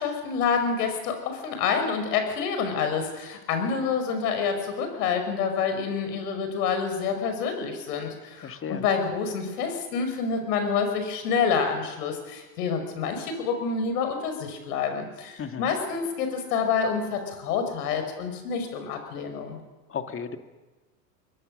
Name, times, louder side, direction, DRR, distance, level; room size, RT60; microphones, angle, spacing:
voice 1, 0.0-19.6, left 6 dB, 70° left, 6 dB, 5.6 m, -28 dB
voice 2, 8.4-8.8 15.4-15.7 19.9-20.4, left 7 dB, 25° left, 7 dB, 2.0 m, -34 dB
22.5 x 21.0 x 6.5 m, 1.2 s
hypercardioid pair, 95°, 49 cm